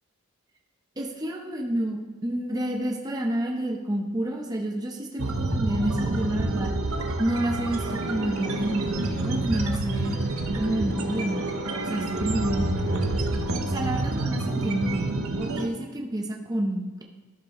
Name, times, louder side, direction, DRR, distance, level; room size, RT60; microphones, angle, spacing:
voice 1, 1.0-6.7 7.2-10.2 10.6-11.5 11.9-13.0 13.6-15.1 15.4-17.0, right 1 dB, 15° right, 0 dB, 0.8 m, -29 dB
sound 1, 5.2-15.7, right 2 dB, 75° right, 0.9 m, -28 dB
sound 2, 7.7-13.2, equal, 20° left, 1.2 m, -46 dB
sound 3, 9.8-15.2, equal, 55° right, 2.1 m, -39 dB
12.5 x 6.8 x 3.1 m, 1.3 s
head